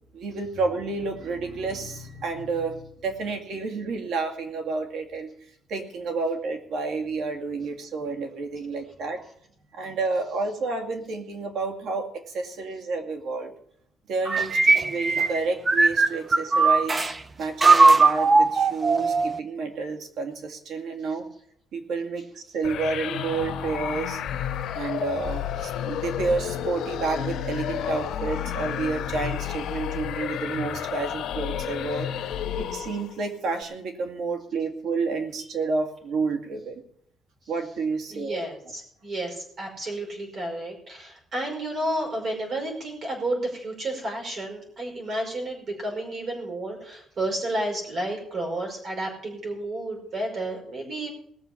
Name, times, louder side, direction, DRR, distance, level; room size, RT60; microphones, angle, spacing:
voice 1, 0.1-5.3 5.7-9.2 9.7-13.5 14.1-17.0 17.4-21.2 21.7-24.2 24.7-32.1 32.6-36.8 37.5-38.4, right 4 dB, 70° right, 4 dB, 2.3 m, -30 dB
sound 1, 14.3-17.1 17.6-19.4, right 3 dB, 20° right, 0.6 m, -19 dB
sound 2, 22.6-33.2, left 10 dB, 75° left, 1.3 m, -31 dB
voice 2, 38.1-51.1, right 1 dB, 40° right, 1 dB, 5.4 m, -31 dB
19.0 x 6.9 x 7.0 m, 0.66 s
cardioid pair, 160°, 0 cm